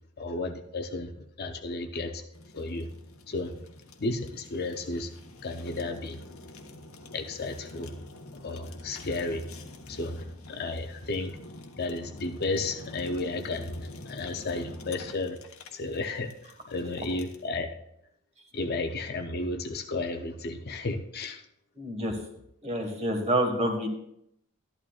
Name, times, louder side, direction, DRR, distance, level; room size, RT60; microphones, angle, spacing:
voice 1, 0.2-1.1 1.4-2.2 2.5-2.9 3.3-3.6 4.0-5.1 5.4-6.3 7.1-8.0 8.3-9.5 9.9-11.4 11.8-15.4 15.7-16.3 16.7-17.8 18.5-21.4, left 2 dB, 45° left, 0.6 m, -33 dB
Fire, 2.3-17.5, left 2 dB, 70° left, 1.2 m, -47 dB
voice 2, 21.7-22.2 22.6-23.9, right 1 dB, 30° right, 1.6 m, -28 dB
13.0 x 11.0 x 2.4 m
head